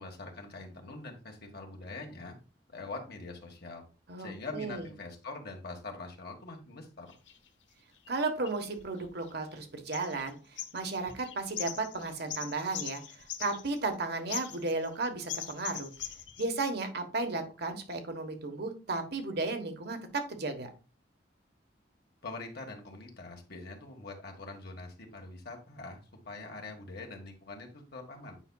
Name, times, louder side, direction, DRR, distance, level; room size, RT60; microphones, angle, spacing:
voice 1, 0.0-2.3 2.7-3.8 4.2-7.1 22.2-28.4, left 3 dB, 60° left, 1 dB, 1.6 m, -44 dB
voice 2, 4.1-4.9 8.1-15.9 16.4-20.7, right 3 dB, 60° right, 6 dB, 1.2 m, -34 dB
sound 1, 7.1-7.4 8.1-9.6 9.9-10.3 10.6-13.9 14.3-14.9 15.3-16.5, left 10 dB, 85° left, 1.0 m, -41 dB
8.9 x 5.6 x 2.3 m, 0.33 s
head